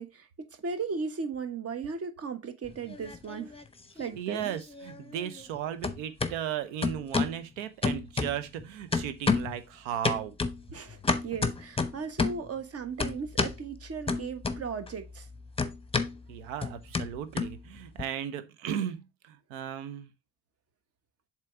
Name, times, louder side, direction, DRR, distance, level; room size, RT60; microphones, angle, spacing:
voice 1, 0.0-3.5 4.0-4.5 10.7-15.3, right 5 dB, 40° right, 1.2 m, -36 dB
sound 1, 2.7-3.7 4.0-5.6 5.8-6.3 6.8-7.4 7.8-8.6 8.9-9.6 10.0-12.5 13.0-13.6 14.1-14.9 15.2-18.0, left 4 dB, 15° left, 1.0 m, -30 dB
voice 2, 4.2-10.3 16.3-20.1, right 10 dB, 75° right, 0.8 m, -36 dB
7.5 x 3.1 x 4.5 m
hypercardioid pair, 50°, 37 cm